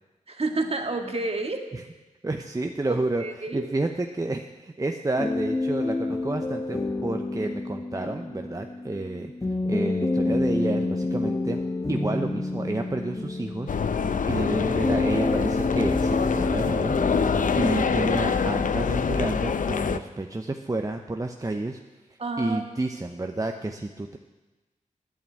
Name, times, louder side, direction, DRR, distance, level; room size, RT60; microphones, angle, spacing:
voice 1, 0.3-1.6 2.9-3.7 14.0-14.4 17.3-17.8 22.2-22.6, right 2 dB, 45° right, 4 dB, 1.7 m, -31 dB
voice 2, 2.2-9.3 9.6-11.6 11.9-21.8 22.4-24.2, right 2 dB, 25° right, 4 dB, 0.8 m, -30 dB
sound 1, 5.2-19.0, left 2 dB, 25° left, 1.1 m, -29 dB
sound 2, 13.7-20.0, left 6 dB, 70° left, 0.6 m, -25 dB
11.0 x 8.9 x 8.9 m, 1.1 s
wide cardioid pair, 65°, 14 cm